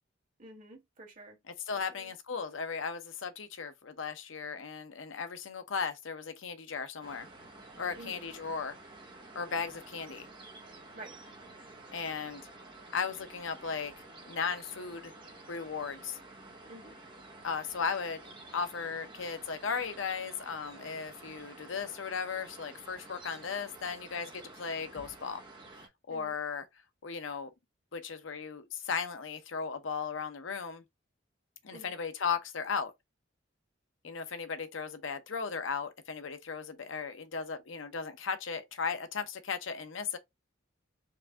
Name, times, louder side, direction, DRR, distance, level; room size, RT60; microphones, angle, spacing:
voice 1, 0.4-1.4 1.7-2.1 8.0-8.3 10.9-11.2 16.7-17.0 26.1-26.4 31.7-31.9, right 1 dB, 45° right, 1.9 m, -50 dB
voice 2, 1.5-7.3 7.8-8.7 9.3-10.3 11.9-12.4 12.9-13.9 14.3-15.1 15.5-16.2 17.4-18.2 18.5-25.4 26.1-26.6 27.0-27.5 27.9-30.8 31.6-32.9 34.0-40.2, left 5 dB, 75° left, 0.7 m, -36 dB
sound 1, 7.0-25.9, right 2 dB, 25° right, 1.1 m, -51 dB
4.6 x 2.6 x 3.3 m
head